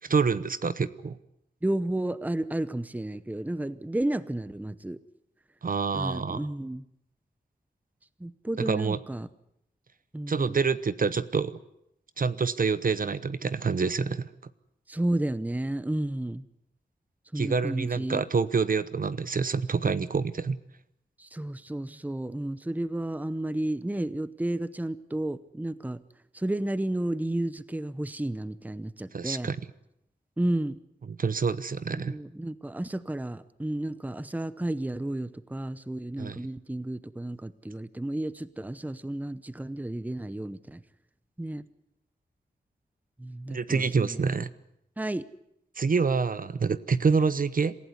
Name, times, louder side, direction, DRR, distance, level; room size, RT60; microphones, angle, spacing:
voice 1, 0.0-1.2 5.6-6.5 8.6-9.0 10.3-11.6 12.2-14.3 17.3-20.6 29.1-29.6 31.2-32.2 36.2-36.4 43.5-44.5 45.8-47.8, right 5 dB, 50° right, 15 dB, 0.9 m, -27 dB
voice 2, 1.6-5.0 5.9-6.8 8.2-9.3 10.1-10.6 14.9-16.4 17.3-18.2 21.2-26.0 26.3-29.5 30.4-30.8 31.9-40.8 41.4-41.6 43.2-44.2 45.0-45.2, right 1 dB, 10° right, 15 dB, 0.8 m, -32 dB
27.0 x 15.5 x 9.6 m, 0.80 s
wide cardioid pair, 130°, 18 cm